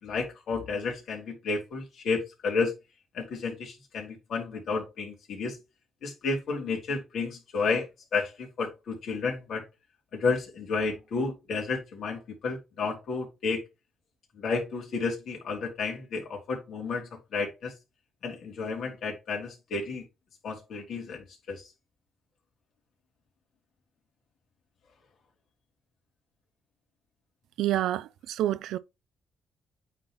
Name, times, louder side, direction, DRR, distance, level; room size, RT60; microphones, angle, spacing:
voice 1, 0.0-2.7 3.1-5.6 6.0-9.6 10.1-13.6 14.4-17.7 18.2-20.1 20.4-21.6, left 4 dB, 65° left, 3.1 m, -31 dB
voice 2, 27.6-28.8, right 13 dB, 85° right, 0.4 m, -28 dB
8.8 x 3.9 x 3.1 m
cardioid pair, 90°, 0 cm